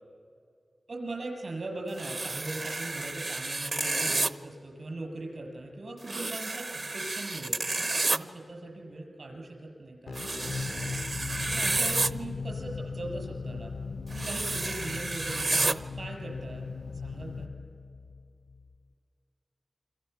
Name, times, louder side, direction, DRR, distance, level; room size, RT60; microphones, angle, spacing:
voice 1, 0.9-7.6 8.1-11.0 11.5-13.7 14.1-16.7 16.9-17.5, right 2 dB, 75° right, 1 dB, 7.3 m, -40 dB
sound 1, 2.0-4.3 6.0-8.2 10.1-12.1 14.1-15.7, right 2 dB, 55° right, 0.9 m, -30 dB
sound 2, 10.1-18.8, left 4 dB, 85° left, 0.6 m, -38 dB
29.5 x 25.0 x 7.1 m, 2.3 s
wide cardioid pair, 65°, 0 cm